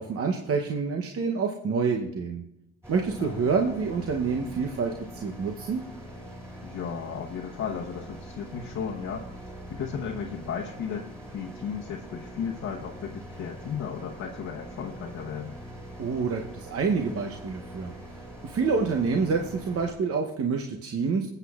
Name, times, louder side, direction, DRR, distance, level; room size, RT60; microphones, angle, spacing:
voice 1, 0.0-2.4 2.9-5.8 16.0-17.9 18.4-21.3, right 5 dB, 50° right, 2 dB, 0.8 m, -27 dB
sound 1, 2.8-19.9, right 1 dB, 10° right, 3.7 m, -43 dB
voice 2, 3.2-3.5 6.6-9.3 9.7-15.6, left 7 dB, 70° left, -2 dB, 1.0 m, -35 dB
20.5 x 8.0 x 2.4 m, 0.85 s
cardioid pair, 90°, 30 cm